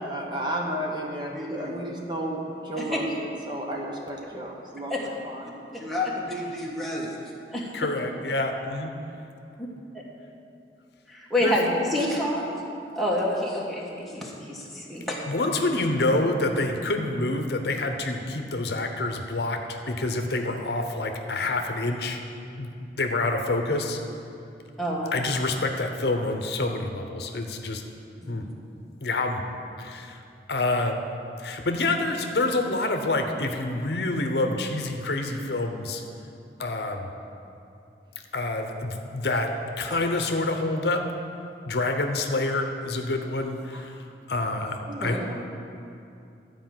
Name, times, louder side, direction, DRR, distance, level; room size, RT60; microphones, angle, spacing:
voice 1, 0.0-3.0 3.5-4.9 5.2-5.4 43.7-43.8 44.9-45.5, right 1 dB, 25° right, -1 dB, 1.1 m, -32 dB
voice 2, 1.3-1.8 2.8-3.0 4.9-5.1 5.4-7.1 7.5-7.7 11.1-12.6 12.9-15.2 24.8-25.2 28.2-28.4, left 1 dB, ahead, -5 dB, 1.4 m, -28 dB
voice 3, 7.7-8.9 11.4-11.6 15.2-22.2 22.6-24.0 25.1-27.8 28.3-28.4 29.0-29.4 29.8-30.2 30.5-31.0 31.4-36.0 36.6-37.1 38.3-39.5 39.8-41.0 41.6-43.9 44.3-45.2, left 2 dB, 70° left, 4 dB, 0.8 m, -27 dB
12.5 x 4.9 x 7.7 m, 2.6 s
head